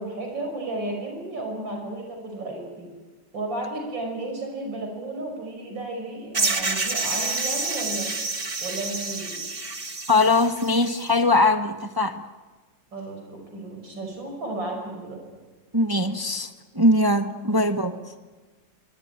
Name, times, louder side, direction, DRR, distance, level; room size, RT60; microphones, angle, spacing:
voice 1, 0.0-2.9 3.3-8.1 8.6-9.4 12.9-15.2 17.4-17.6, right 2 dB, 85° right, 3 dB, 6.2 m, -33 dB
sound 1, 6.3-11.1, right 3 dB, 30° right, 2.1 m, -28 dB
voice 2, 10.1-12.2 15.7-18.1, left 2 dB, 15° right, 7 dB, 1.0 m, -21 dB
25.5 x 24.5 x 9.1 m, 1.3 s
omnidirectional pair, 2.0 m